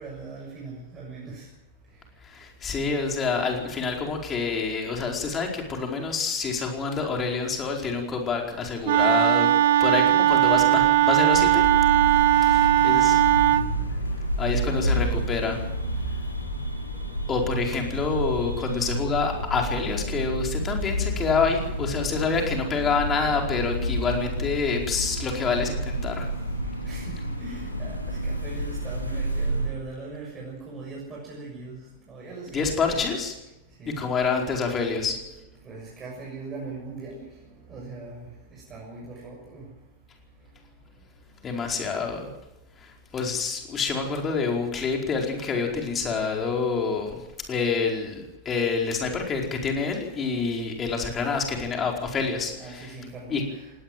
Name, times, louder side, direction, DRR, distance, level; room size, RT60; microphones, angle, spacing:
voice 1, 0.0-1.5 12.9-13.2 26.8-31.8 32.1-33.1 33.8-34.1 35.6-37.3 37.6-39.6 52.6-53.7, right 3 dB, 25° right, -3 dB, 6.7 m, -40 dB
voice 2, 2.2-9.5 9.8-11.7 12.1-13.2 14.4-15.6 17.3-26.3 32.5-33.3 34.0-35.2 41.4-42.3 42.8-47.2 47.5-52.9 53.3-53.4, left 5 dB, 25° left, 1 dB, 4.7 m, -27 dB
Wind instrument woodwind instrument, 8.8-13.7, right 13 dB, 55° right, 0.8 m, -19 dB
sound 1, 11.3-29.7, right 1 dB, 85° left, 3.6 m, -30 dB
19.0 x 18.5 x 7.7 m, 0.91 s
figure-of-eight pair, 90°, 0 cm